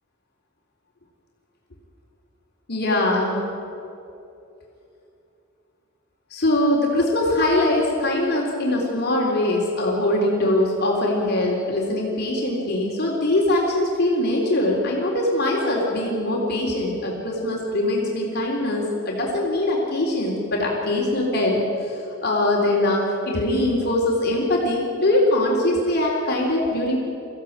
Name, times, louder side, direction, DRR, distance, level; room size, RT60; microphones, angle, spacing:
voice 1, 2.7-3.4 6.3-27.0, left 1 dB, 55° left, -2 dB, 3.9 m, -22 dB
24.5 x 15.5 x 8.9 m, 2.7 s
head